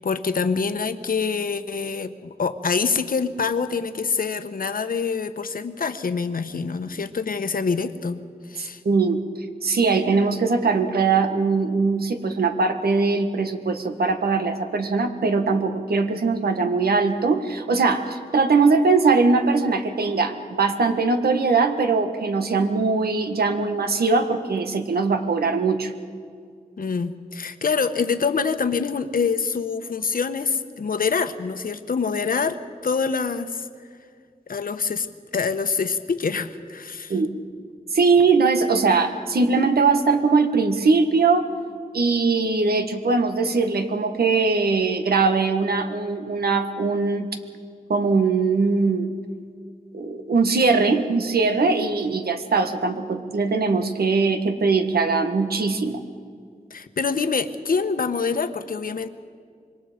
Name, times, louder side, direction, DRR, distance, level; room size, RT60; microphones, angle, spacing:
voice 1, 0.0-8.2 8.5-8.8 26.8-33.7 34.5-35.1 35.3-37.2 56.7-59.1, left 5 dB, 65° left, 10 dB, 1.1 m, -25 dB
voice 2, 8.8-9.2 9.6-25.9 37.1-37.3 37.9-41.4 41.9-47.3 47.9-49.1 49.9-56.0, right 4 dB, 85° right, 7 dB, 1.6 m, -21 dB
26.0 x 22.0 x 5.2 m, 2.1 s
wide cardioid pair, 80°, 16 cm